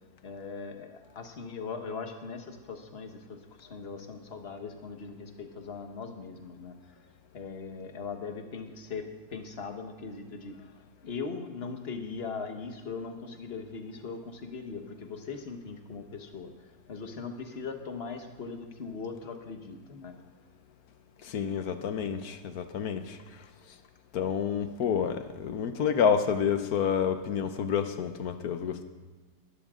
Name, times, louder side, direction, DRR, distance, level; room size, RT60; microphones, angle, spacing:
voice 1, 0.2-6.7 7.3-9.0 9.3-10.6 11.0-16.5 16.9-20.2, left 5 dB, 35° left, 5 dB, 1.4 m, -40 dB
voice 2, 21.2-23.2 24.1-28.8, left 7 dB, 60° left, 9 dB, 1.2 m, -29 dB
20.5 x 12.5 x 3.7 m, 1.3 s
omnidirectional pair, 2.0 m